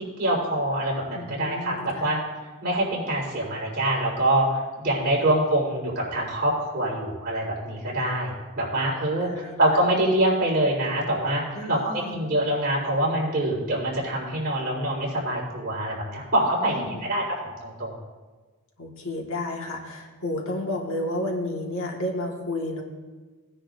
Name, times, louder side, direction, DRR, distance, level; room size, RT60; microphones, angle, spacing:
voice 1, 0.0-2.2 2.6-17.2 17.6-18.0, right 1 dB, 45° right, -4 dB, 4.0 m, -25 dB
voice 2, 1.1-2.1 5.2-5.3 8.7-9.6 11.5-12.2 16.6-17.0 18.8-22.8, left 1 dB, 65° left, 0 dB, 1.6 m, -32 dB
19.0 x 10.0 x 2.6 m, 1.3 s
head